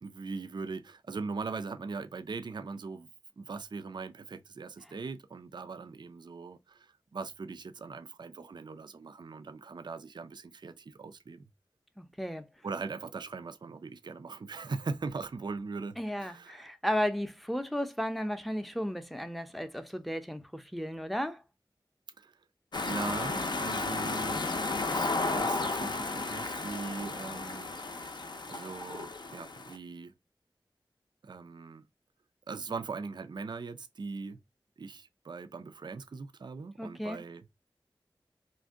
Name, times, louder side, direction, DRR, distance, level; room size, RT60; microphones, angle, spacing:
voice 1, 0.0-3.1 3.4-11.4 12.6-16.6 22.2-22.4 22.8-24.4 24.9-27.7 28.5-30.1 31.2-31.9 32.5-34.4 34.8-37.5, right 4 dB, 55° right, 0.3 m, -40 dB
voice 2, 12.0-12.5 16.0-21.4 36.8-37.2, equal, ahead, 0.5 m, -34 dB
sound 1, 22.7-29.8, left 3 dB, 55° left, 0.5 m, -33 dB
2.5 x 2.1 x 3.5 m
wide cardioid pair, 45°, 9 cm